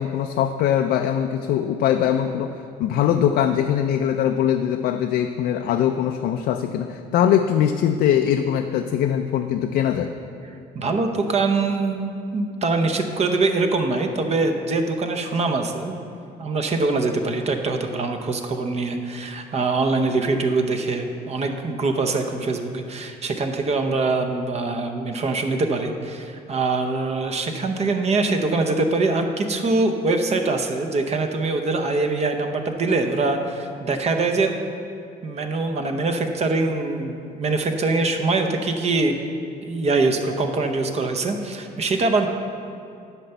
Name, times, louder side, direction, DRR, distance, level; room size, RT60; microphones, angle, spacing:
voice 1, 0.0-10.1, left 9 dB, 70° left, 5 dB, 0.4 m, -22 dB
voice 2, 10.7-15.9 16.4-34.5 35.2-39.2 39.6-42.3, right 3 dB, 40° right, 5 dB, 0.8 m, -23 dB
10.0 x 4.4 x 6.9 m, 2.5 s
cardioid pair, 110°, 17 cm